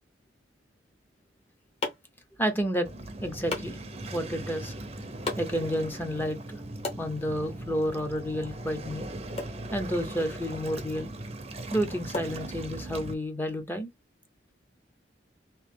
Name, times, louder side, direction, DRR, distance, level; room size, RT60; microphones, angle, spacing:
sound 1, 1.1-13.1, left 2 dB, 35° left, 1.1 m, -42 dB
voice 1, 2.4-2.9 3.2-3.8 4.1-4.7 5.4-6.6 7.0-9.1 9.7-11.1 11.7-13.9, equal, 10° left, 0.6 m, -30 dB
Waves surf, 2.8-13.1, right 2 dB, 35° right, 0.6 m, -39 dB
2.9 x 2.7 x 3.3 m
head